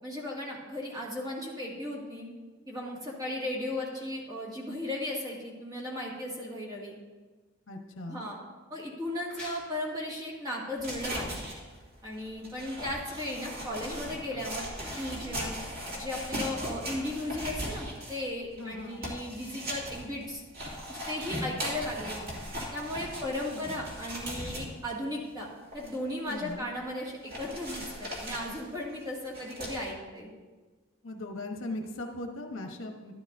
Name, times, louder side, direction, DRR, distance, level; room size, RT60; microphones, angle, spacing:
voice 1, 0.0-2.3 2.7-6.9 8.1-8.4 8.7-11.3 12.0-14.7 15.0-15.6 16.0-20.4 20.9-22.3 22.7-25.5 25.7-30.3, left 1 dB, 20° right, -5 dB, 2.1 m, -36 dB
voice 2, 7.7-8.3 18.6-19.1 23.4-23.8 26.3-26.7 31.0-33.1, left 1 dB, 80° left, 3 dB, 1.1 m, -39 dB
sound 1, 9.0-16.4, left 2 dB, 5° left, 3.6 m, -52 dB
sound 2, 10.8-24.9 25.4-25.5 25.7-26.8 27.3-29.9, equal, 45° right, 2.6 m, -38 dB
12.0 x 12.0 x 2.7 m, 1.4 s
head